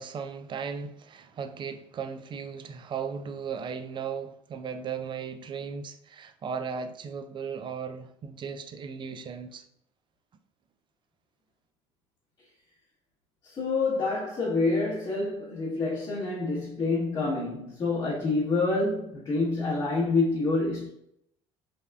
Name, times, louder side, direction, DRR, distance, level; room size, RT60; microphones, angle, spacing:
voice 1, 0.0-9.6, right 6 dB, 35° right, 0.3 m, -36 dB
voice 2, 13.5-20.9, left 3 dB, 30° left, 1.0 m, -27 dB
3.4 x 2.3 x 2.2 m
supercardioid pair, 80°, 14 cm